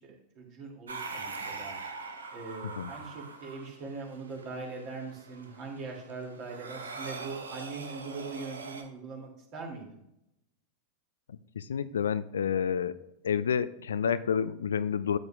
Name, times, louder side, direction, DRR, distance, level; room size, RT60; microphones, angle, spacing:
voice 1, 0.0-1.8 2.3-10.0, right 4 dB, 40° right, 0 dB, 2.8 m, -41 dB
sound 1, 0.9-8.8, right 4 dB, 70° right, 1.1 m, -43 dB
voice 2, 11.6-12.9 13.2-15.2, left 7 dB, 65° left, 15 dB, 0.4 m, -29 dB
12.5 x 7.9 x 2.5 m, 0.81 s
figure-of-eight pair, 90°, 0 cm